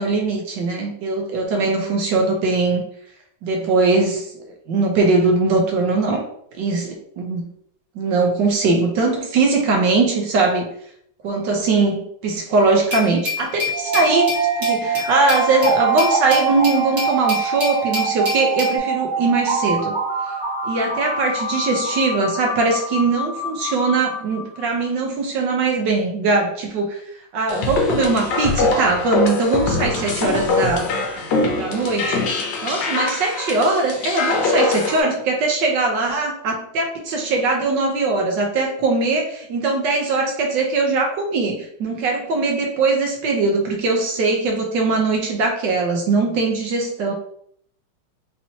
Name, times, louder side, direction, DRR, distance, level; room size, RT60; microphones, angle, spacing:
voice 1, 0.0-2.8 3.4-4.3 4.7-6.2 6.6-7.5 7.9-10.7 11.2-20.0 20.6-27.0 27.3-30.9 31.6-32.3 32.6-47.1, right 3 dB, 70° right, 2 dB, 1.2 m, -21 dB
Glass, 12.9-18.8, left 4 dB, 30° right, 1.6 m, -28 dB
sound 1, 13.7-24.7, right 4 dB, 50° right, 2.1 m, -24 dB
sound 2, 27.5-35.0, left 3 dB, 70° left, 1.2 m, -22 dB
4.3 x 2.9 x 2.7 m, 0.66 s
omnidirectional pair, 2.4 m